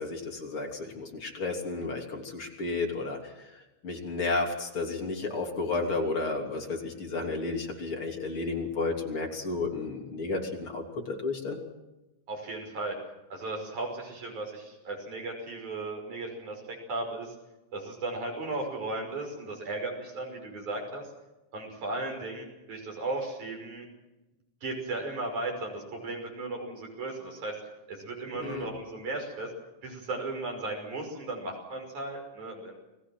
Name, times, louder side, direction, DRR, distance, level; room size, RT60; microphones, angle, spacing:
voice 1, 0.0-3.5 3.8-11.6 28.4-28.7, left 3 dB, 45° left, 1 dB, 4.0 m, -32 dB
voice 2, 12.3-13.0 13.3-16.6 16.9-17.3 17.7-21.0 21.5-23.9 24.6-27.6 27.9-29.5 29.8-32.8, right 2 dB, 85° right, 2 dB, 7.1 m, -36 dB
30.0 x 20.0 x 6.3 m, 0.98 s
omnidirectional pair, 3.3 m